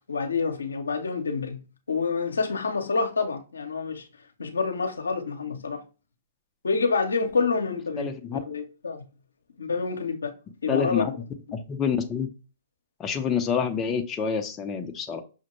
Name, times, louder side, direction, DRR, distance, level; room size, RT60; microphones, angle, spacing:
voice 1, 0.1-1.6 1.9-4.1 4.4-5.8 6.6-9.0 9.6-10.3 10.6-11.1, left 4 dB, 90° left, 0.7 m, -27 dB
voice 2, 8.0-8.4 10.7-11.1 11.5-12.3 13.0-15.2, left 6 dB, 20° left, 0.6 m, -27 dB
6.0 x 2.1 x 3.0 m
hypercardioid pair, 125°, 0 cm